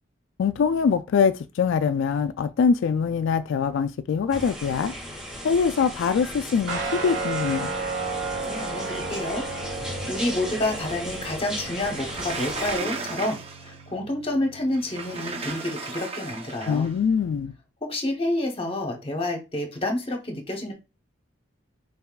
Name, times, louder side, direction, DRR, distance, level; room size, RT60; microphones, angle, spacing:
voice 1, 0.4-4.9 5.4-7.7 16.7-17.5, left 6 dB, 75° left, 0.3 m, -23 dB
sound 1, 4.3-12.8, equal, 5° right, 1.7 m, -36 dB
Guitar, 6.7-15.5, right 3 dB, 75° right, 2.3 m, -34 dB
voice 2, 8.4-9.4 9.8-16.9 17.8-20.7, left 1 dB, 30° left, 1.0 m, -29 dB
Sliding door, 11.9-13.8 14.7-16.9, right 4 dB, 30° right, 0.7 m, -35 dB
5.6 x 4.0 x 2.3 m
head